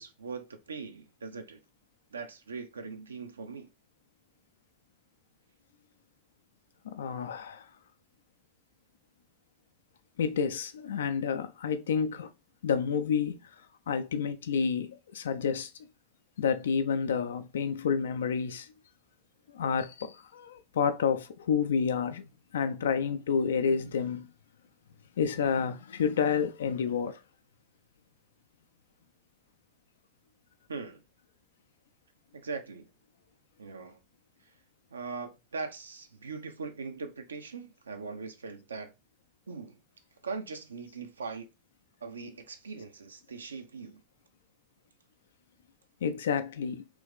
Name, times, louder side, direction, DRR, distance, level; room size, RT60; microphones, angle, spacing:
voice 1, 0.0-1.6 2.1-3.7 30.7-31.0 32.3-32.9 33.6-34.0 34.9-38.9 39.5-39.8 40.2-41.5 42.0-44.0, right 4 dB, 70° right, 0.6 m, -40 dB
voice 2, 6.8-7.7 10.2-12.3 12.6-13.4 13.9-15.7 16.4-18.7 19.5-22.3 22.5-24.3 25.2-27.2 46.0-46.8, left 6 dB, 65° left, 0.4 m, -29 dB
3.3 x 3.0 x 3.4 m
figure-of-eight pair, 90°, 0 cm